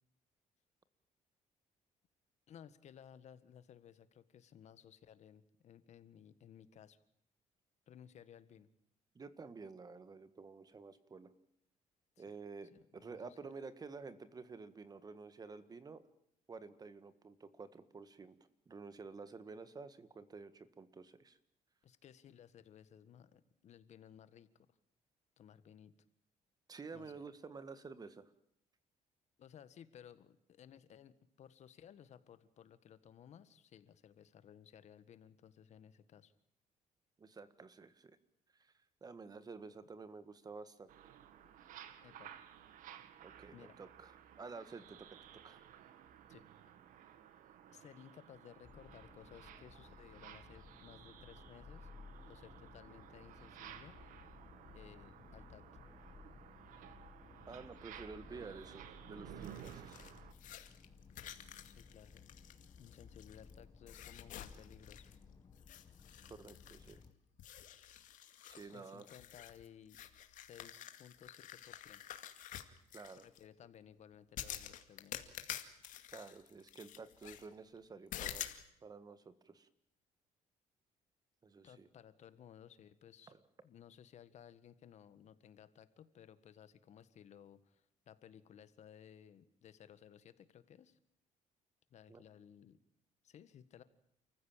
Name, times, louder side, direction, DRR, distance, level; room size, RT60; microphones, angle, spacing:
voice 1, 2.5-7.0 7.9-8.7 12.2-12.4 12.7-13.4 21.8-24.8 25.4-25.9 26.9-27.2 29.4-36.3 42.0-42.3 43.5-43.8 46.3-46.4 47.7-51.9 52.3-54.0 54.7-55.6 61.6-62.2 62.8-65.1 68.7-70.0 70.3-72.0 73.2-75.3 81.6-83.3 83.6-91.0 91.9-92.8 93.2-93.8, left 9 dB, 55° left, 14 dB, 1.7 m, -58 dB
voice 2, 9.2-11.3 12.2-16.0 16.5-18.4 18.7-21.4 26.7-28.3 37.2-38.2 38.6-38.7 39.0-40.9 43.2-45.2 45.4-45.6 57.5-60.1 66.3-67.0 68.5-69.1 72.9-73.3 76.1-78.5 78.8-79.7 81.4-81.9 83.3-83.4 92.1-92.2, right 4 dB, 30° right, 13 dB, 1.7 m, -51 dB
sound 1, 40.9-60.3, right 10 dB, 80° right, 1.9 m, -55 dB
sound 2, 48.6-67.1, left 5 dB, 30° left, 1.6 m, -58 dB
sound 3, 59.4-63.5 63.9-65.2 65.6-67.1 67.4-73.4 74.4-77.5 78.1-78.6, left 11 dB, 75° left, 2.2 m, -49 dB
29.5 x 15.0 x 9.0 m, 0.75 s
cardioid pair, 125°, 14 cm